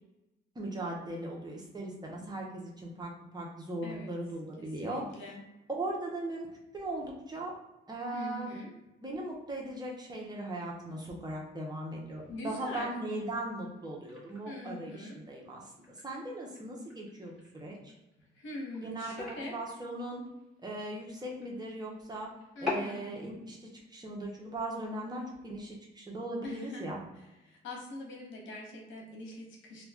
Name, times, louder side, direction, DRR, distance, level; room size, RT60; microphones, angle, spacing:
voice 1, 0.5-5.0 5.7-6.5 6.7-7.5 7.9-8.5 9.0-15.7 16.0-17.9 18.8-20.2 20.6-22.3 22.6-27.0, right 1 dB, 20° right, -2 dB, 0.8 m, -38 dB
voice 2, 3.8-4.1 4.6-5.4 8.1-8.7 12.3-12.9 14.4-15.2 18.3-19.5 22.5-23.1 26.4-26.9 27.1-29.8, left 1 dB, 75° left, 0 dB, 0.9 m, -42 dB
sound 1, 12.0-24.0, left 3 dB, ahead, 1.4 m, -46 dB
2.5 x 2.3 x 3.4 m, 0.99 s
cardioid pair, 90°, 20 cm